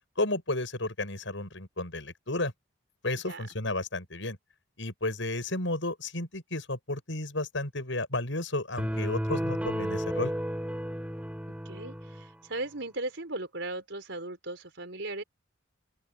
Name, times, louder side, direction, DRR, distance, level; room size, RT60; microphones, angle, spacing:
voice 1, 0.2-2.5 3.0-4.4 4.8-10.3, left 2 dB, 70° left, 7.4 m, -32 dB
sound 1, 8.8-12.3, equal, 5° right, 5.1 m, -33 dB
voice 2, 11.6-15.2, right 2 dB, 65° right, 4.7 m, -37 dB
head